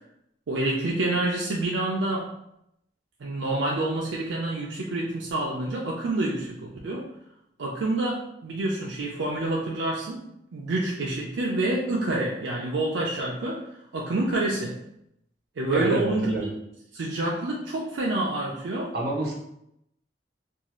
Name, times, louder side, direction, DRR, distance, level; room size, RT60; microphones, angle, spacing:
voice 1, 0.5-2.3 3.2-7.1 7.6-10.2 10.5-13.6 13.9-14.8 15.6-16.5 16.9-18.9, right 2 dB, 85° right, -3 dB, 0.5 m, -27 dB
voice 2, 15.7-16.5 18.9-19.3, right 2 dB, 60° right, -3 dB, 0.9 m, -27 dB
2.6 x 2.3 x 3.0 m, 0.77 s
head